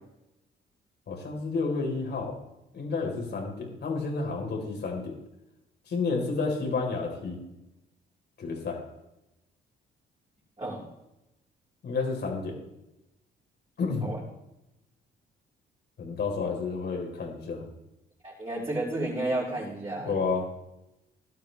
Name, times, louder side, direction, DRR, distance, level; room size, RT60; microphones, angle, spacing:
voice 1, 1.1-2.4 2.7-5.2 5.9-7.4 8.4-8.8 11.8-12.6 13.8-14.1 16.0-17.6 19.9-20.7, left 4 dB, 60° left, 1 dB, 4.3 m, -30 dB
voice 2, 18.2-20.1, right 2 dB, 25° right, -7 dB, 5.6 m, -31 dB
17.0 x 12.0 x 3.5 m, 0.93 s
cardioid pair, 90°, 20 cm